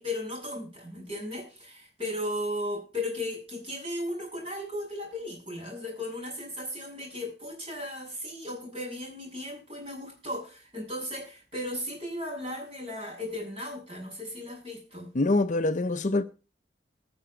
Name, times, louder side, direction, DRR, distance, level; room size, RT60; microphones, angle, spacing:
voice 1, 0.0-15.1, left 1 dB, 30° right, 7.4 m, -36 dB
voice 2, 15.1-16.2, left 2 dB, 40° left, 0.6 m, -25 dB
20.0 x 7.0 x 5.0 m
head